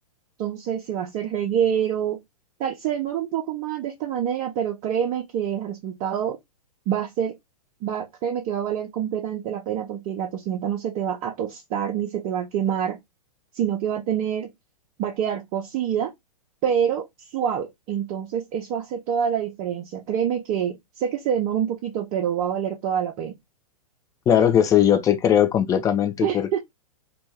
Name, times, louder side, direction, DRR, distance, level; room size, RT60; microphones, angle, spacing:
voice 1, 0.4-2.2 2.6-6.4 6.9-7.3 7.8-13.0 13.5-14.5 15.0-16.1 16.6-17.1 17.3-23.3 26.2-26.6, right 9 dB, 35° right, 0.6 m, -26 dB
voice 2, 24.3-26.6, left 9 dB, 15° left, 0.4 m, -19 dB
2.6 x 2.2 x 3.1 m
hypercardioid pair, 110°, 19 cm